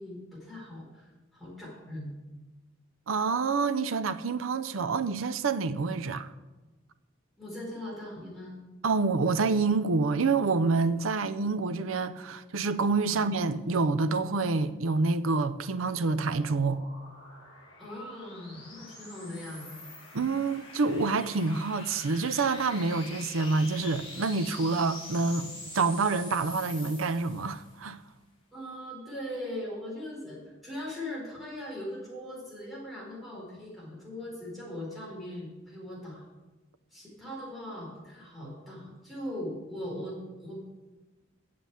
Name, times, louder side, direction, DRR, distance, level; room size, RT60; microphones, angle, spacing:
voice 1, 0.0-2.2 7.4-8.6 13.1-13.2 17.8-19.7 28.5-36.2 36.9-40.2 40.4-40.6, left 1 dB, ahead, 4.4 m, -40 dB
voice 2, 3.1-6.3 8.8-16.8 20.1-28.0, right 4 dB, 85° right, 0.6 m, -27 dB
sound 1, 15.8-27.8, left 2 dB, 30° left, 3.7 m, -46 dB
7.6 x 7.5 x 8.4 m
head